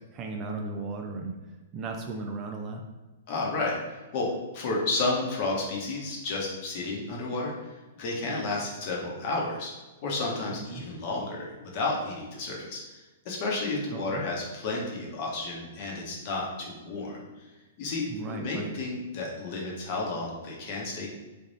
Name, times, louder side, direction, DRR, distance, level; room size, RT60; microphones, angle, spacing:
voice 1, 0.1-1.4 1.7-2.9 10.5-10.8 13.9-14.2 18.1-18.8, right 3 dB, 25° right, 2 dB, 0.4 m, -36 dB
voice 2, 3.3-3.8 4.1-4.3 4.5-7.5 8.0-9.7 10.0-12.8 13.2-17.2 17.8-21.1, left 3 dB, 45° left, -2 dB, 1.0 m, -31 dB
3.4 x 2.5 x 4.0 m, 1.2 s
hypercardioid pair, 145°, 0 cm